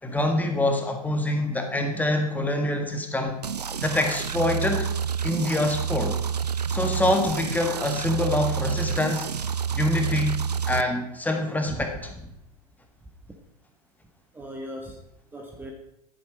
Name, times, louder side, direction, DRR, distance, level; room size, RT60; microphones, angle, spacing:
voice 1, 0.0-3.4 3.8-4.9 5.2-6.2 6.7-9.3 9.7-10.4 10.7-11.9, left 1 dB, 10° left, 4 dB, 1.7 m, -25 dB
sound 1, 3.4-10.8, right 7 dB, 85° right, 0.5 m, -29 dB
voice 2, 11.7-12.2 13.3-13.4 14.3-15.0 15.3-15.7, right 1 dB, 10° right, 1 dB, 1.3 m, -38 dB
11.0 x 8.5 x 5.0 m, 0.80 s
figure-of-eight pair, 95°, 20 cm